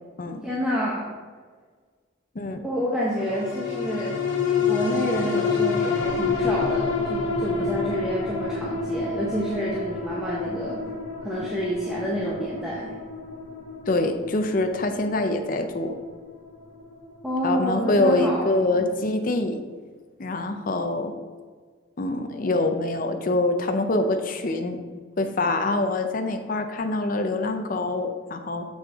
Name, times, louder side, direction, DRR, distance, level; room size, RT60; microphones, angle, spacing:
voice 1, 0.4-1.1 2.6-4.1 4.6-10.8 11.2-12.9 17.2-18.9, equal, 5° right, -6 dB, 0.9 m, -28 dB
sound 1, 3.1-17.8 18.2-18.3, left 4 dB, 85° left, 1.9 m, -29 dB
voice 2, 13.9-15.9 17.4-19.6 20.2-21.1 22.0-24.8 25.2-28.6, left 2 dB, 40° left, 6 dB, 0.5 m, -25 dB
6.5 x 6.3 x 3.5 m, 1.5 s
head